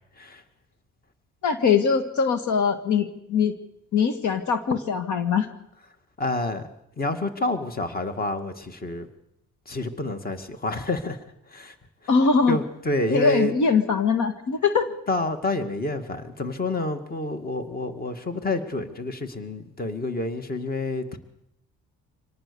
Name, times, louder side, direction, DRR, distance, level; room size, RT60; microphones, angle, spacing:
voice 1, 1.4-3.6 3.9-5.5 12.1-12.6 13.1-14.9, left 5 dB, 65° left, 9 dB, 1.9 m, -22 dB
voice 2, 6.2-6.7 7.0-9.1 9.7-11.2 11.5-11.7 12.5-13.5 15.1-21.2, left 2 dB, 30° left, 8 dB, 2.1 m, -28 dB
25.0 x 18.5 x 7.0 m, 0.79 s
cardioid pair, 95°, 32 cm